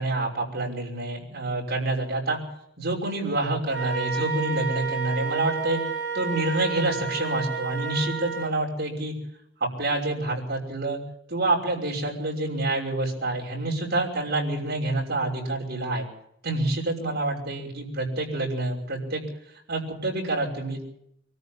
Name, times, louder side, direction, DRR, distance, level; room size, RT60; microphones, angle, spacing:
voice 1, 0.0-2.4 2.8-5.8 6.1-9.1 9.6-11.0 11.3-16.1 16.4-19.2 19.7-20.8, right 2 dB, 55° right, -1 dB, 5.9 m, -27 dB
Wind instrument woodwind instrument, 3.7-8.6, right 5 dB, 75° right, 7.0 m, -31 dB
24.0 x 13.5 x 8.6 m, 0.74 s
head